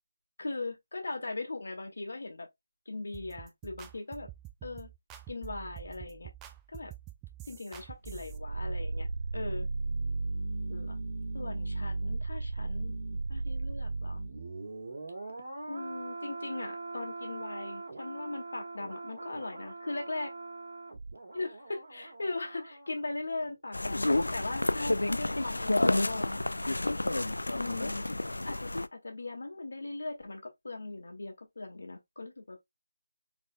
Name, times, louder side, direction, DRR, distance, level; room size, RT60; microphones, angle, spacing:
voice 1, 0.4-2.5 2.8-4.3 4.6-4.9 5.3-6.3 6.7-6.9 7.4-9.1 9.3-9.7 10.7-11.0 11.3-12.9 13.3-14.2 15.7-20.3 21.3-26.4 27.5-28.1 28.5-32.6, left 2 dB, 65° left, 1.6 m, -39 dB
sound 1, 3.1-8.4, right 14 dB, 10° right, 0.3 m, -47 dB
sound 2, 8.0-23.0 23.3-23.4, right 3 dB, 50° right, 2.1 m, -37 dB
sound 3, 23.7-28.9, left 2 dB, 80° left, 0.4 m, -30 dB
4.2 x 4.2 x 2.2 m
figure-of-eight pair, 160°, 0 cm